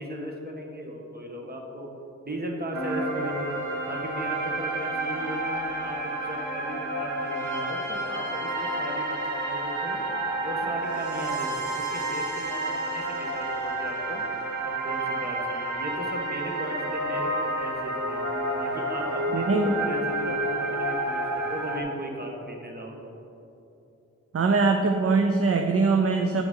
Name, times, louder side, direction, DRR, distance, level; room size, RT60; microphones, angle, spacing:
voice 1, 0.0-1.9 2.2-3.6 3.9-10.0 10.4-14.2 14.8-18.2 18.6-23.1, right 1 dB, 35° right, 0 dB, 1.3 m, -36 dB
sound 1, 2.7-21.8, right 1 dB, 90° right, 1.0 m, -30 dB
voice 2, 19.3-19.8 24.3-26.4, right 4 dB, 50° right, 5 dB, 0.5 m, -22 dB
8.8 x 5.8 x 3.8 m, 2.9 s
wide cardioid pair, 50°, 29 cm